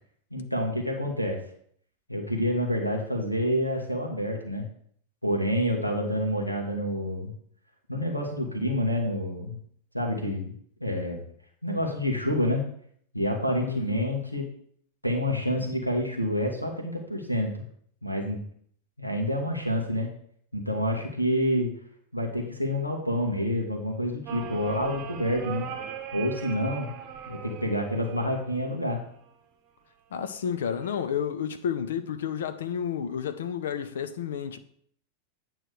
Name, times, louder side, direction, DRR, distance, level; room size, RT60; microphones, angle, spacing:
voice 1, 0.3-1.4 2.1-4.7 5.2-7.3 7.9-9.6 9.9-10.5 10.8-11.2 11.6-12.6 13.1-14.5 15.0-17.6 18.0-18.4 19.0-20.1 20.5-21.7 22.1-25.7 26.1-26.9 27.3-29.0, equal, 90° left, 1.2 m, -28 dB
voice 2, 13.6-14.1 30.1-34.6, left 8 dB, 60° left, 0.5 m, -31 dB
sound 1, 24.3-29.3 30.4-30.9, right 8 dB, 35° right, 0.9 m, -40 dB
9.0 x 3.1 x 6.5 m
figure-of-eight pair, 90°, 0 cm